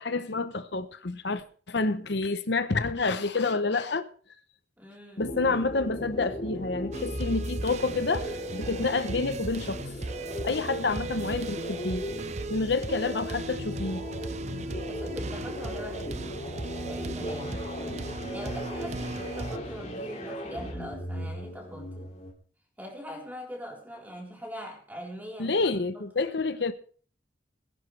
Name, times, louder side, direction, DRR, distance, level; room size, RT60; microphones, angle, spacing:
voice 1, 0.0-4.0 5.2-9.9 10.4-12.0 12.5-14.0 25.4-26.7, left 3 dB, 60° left, 0.8 m, -28 dB
voice 2, 4.8-5.6 14.4-16.5 16.9-17.8 18.3-22.1 22.8-26.0, equal, 10° right, 4.0 m, -42 dB
sound 1, 5.2-22.3, equal, 35° left, 2.4 m, -38 dB
sound 2, 6.9-19.6, right 2 dB, 35° right, 0.6 m, -37 dB
20.5 x 10.5 x 3.3 m
head